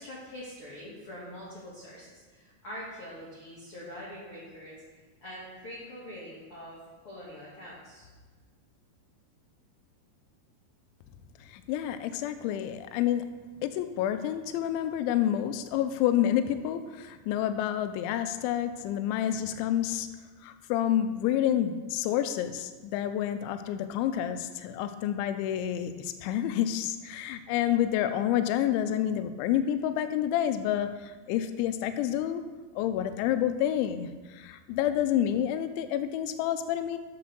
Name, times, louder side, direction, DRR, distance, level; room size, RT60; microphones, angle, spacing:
voice 1, 0.0-4.7 5.2-8.1, equal, 50° left, -8 dB, 1.8 m, -44 dB
voice 2, 11.5-13.3 13.6-20.1 20.4-32.4 32.8-37.0, left 11 dB, 85° left, 9 dB, 2.9 m, -29 dB
7.4 x 6.8 x 6.2 m, 1.4 s
omnidirectional pair, 5.5 m